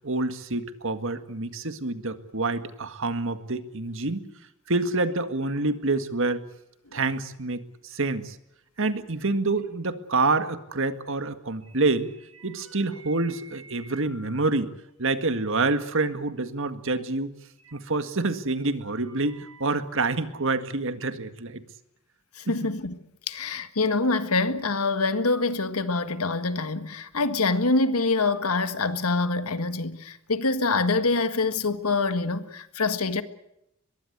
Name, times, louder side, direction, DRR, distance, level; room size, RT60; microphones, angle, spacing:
voice 1, 0.0-4.3 4.7-6.5 6.9-8.4 8.8-12.1 12.4-14.7 15.0-17.3 17.7-21.6 22.5-22.7, right 3 dB, 60° right, 1.9 m, -27 dB
sound 1, 4.6-4.8 5.1-5.2 5.5-6.0 6.5-6.7 7.2-7.3 8.9-9.0 9.4-9.7 10.1-10.2 11.6-14.5 14.9-15.3 16.0-16.1 16.3-16.4 17.6-18.0 18.5-19.7, right 3 dB, 85° right, 4.6 m, -52 dB
voice 2, 22.3-23.0 23.3-33.2, left 3 dB, 85° left, 1.7 m, -25 dB
23.0 x 22.0 x 8.1 m
head